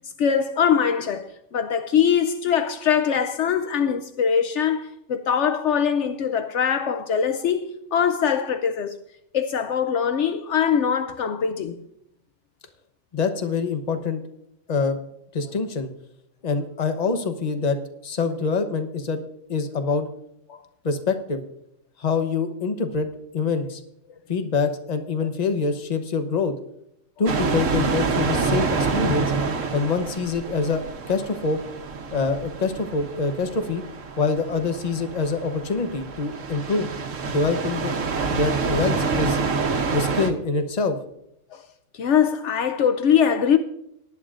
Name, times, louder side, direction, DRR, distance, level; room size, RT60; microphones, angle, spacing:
voice 1, 0.2-8.9 9.3-11.7 20.5-20.6 41.5-41.6 41.9-43.6, left 7 dB, 70° left, 0.9 m, -22 dB
voice 2, 13.1-14.2 14.7-15.0 15.3-15.9 16.4-17.8 18.0-19.2 19.5-20.1 20.8-21.4 22.0-23.1 23.3-23.8 24.3-26.5 27.2-29.3 29.7-31.6 32.1-33.8 34.2-36.9 37.3-38.0 38.3-39.4 39.9-41.0, left 4 dB, 35° left, 1.0 m, -25 dB
sound 1, 27.3-40.3, right 4 dB, 90° right, 1.3 m, -27 dB
18.0 x 11.0 x 2.5 m
omnidirectional pair, 1.3 m